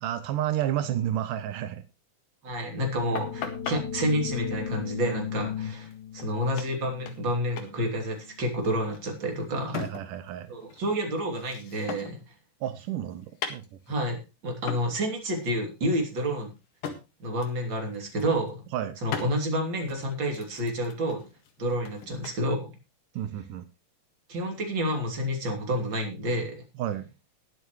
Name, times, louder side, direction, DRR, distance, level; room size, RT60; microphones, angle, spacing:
voice 1, 0.0-1.8 9.7-10.5 12.6-13.6 18.7-19.0 23.2-23.7 26.8-27.0, right 11 dB, 85° right, 11 dB, 2.4 m, -31 dB
voice 2, 2.4-5.9 6.1-9.8 10.5-12.2 13.9-16.5 17.2-18.6 19.0-21.2 21.6-22.8 24.3-26.6, equal, 35° right, 2 dB, 3.6 m, -29 dB
sound 1, 2.7-8.3, left 8 dB, 65° left, 4.2 m, -37 dB
sound 2, 3.2-3.8 5.9-6.0 6.2-6.3 6.6-7.3 7.6-7.8 8.0-10.3 10.6-12.3 12.6-14.1 14.7-14.9 15.3-15.5 15.8-17.0 17.4-17.6 17.9-18.5 19.1-19.3 19.9-22.4, left 7 dB, 85° left, 3.4 m, -39 dB
20.0 x 8.2 x 3.1 m, 0.28 s
omnidirectional pair, 3.7 m